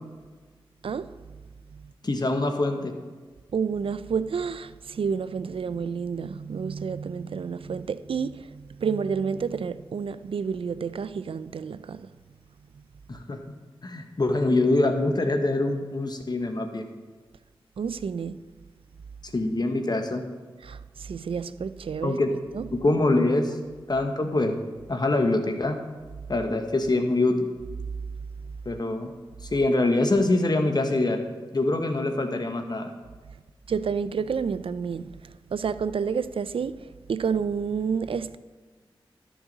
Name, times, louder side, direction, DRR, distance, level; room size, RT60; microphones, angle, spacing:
voice 1, 2.0-2.9 13.1-13.4 13.8-16.8 19.2-20.2 22.0-22.4 22.7-23.6 23.9-24.6 24.9-25.8 26.3-27.5 28.7-29.1 29.5-31.2 31.5-32.9, left 2 dB, 45° left, 1.0 m, -24 dB
voice 2, 3.5-12.0 17.8-18.4 20.6-22.2 22.5-22.7 33.7-35.1 35.5-36.8 37.1-38.4, right 6 dB, 70° right, 0.4 m, -29 dB
13.0 x 6.2 x 4.0 m
cardioid pair, 45°, 10 cm